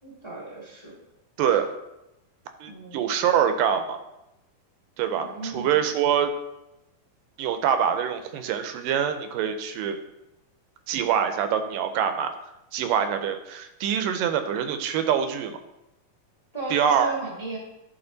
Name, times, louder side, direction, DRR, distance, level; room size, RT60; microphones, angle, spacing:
voice 1, 0.0-0.9 2.7-3.0 5.2-5.8 16.5-17.6, right 3 dB, 30° left, -5 dB, 0.5 m, -35 dB
voice 2, 1.4-1.7 2.6-4.0 5.0-6.3 7.4-10.0 10.9-12.3 12.7-15.6 16.7-17.1, right 8 dB, 80° right, 8 dB, 2.1 m, -25 dB
11.5 x 4.1 x 3.9 m, 0.91 s
omnidirectional pair, 4.1 m